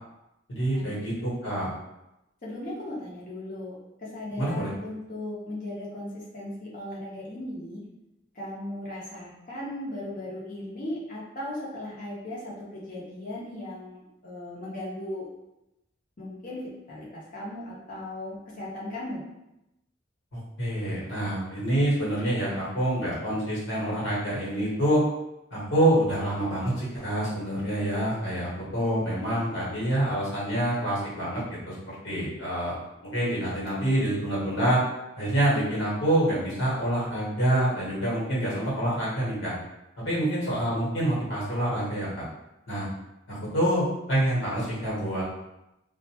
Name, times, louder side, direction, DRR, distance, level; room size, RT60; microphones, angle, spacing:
voice 1, 0.5-1.7 4.4-4.7 20.3-25.0 25.5-32.8 33.0-34.8 35.2-39.5 40.0-42.2 42.7-42.9 43.3-45.2, right 1 dB, 75° left, -7 dB, 1.2 m, -26 dB
voice 2, 2.4-7.8 8.3-15.3 16.2-16.6 16.9-19.2, left 1 dB, 45° left, -6 dB, 0.8 m, -37 dB
2.5 x 2.1 x 2.8 m, 0.92 s
head